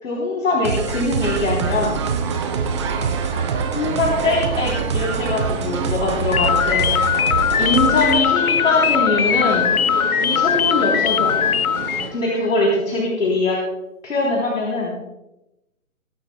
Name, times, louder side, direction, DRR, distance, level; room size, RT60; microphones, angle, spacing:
voice 1, 0.0-2.0 3.7-6.9 7.6-9.7 10.2-11.4 12.1-13.6 14.0-14.9, left 2 dB, 65° left, -2 dB, 3.5 m, -22 dB
sound 1, 0.6-8.2, right 5 dB, 20° right, 0.6 m, -25 dB
sound 2, 1.2-12.1, right 5 dB, 45° right, 2.7 m, -30 dB
sound 3, 6.3-12.1, left 8 dB, 85° left, 0.6 m, -20 dB
21.5 x 12.0 x 2.2 m, 0.92 s
figure-of-eight pair, 145°, 42 cm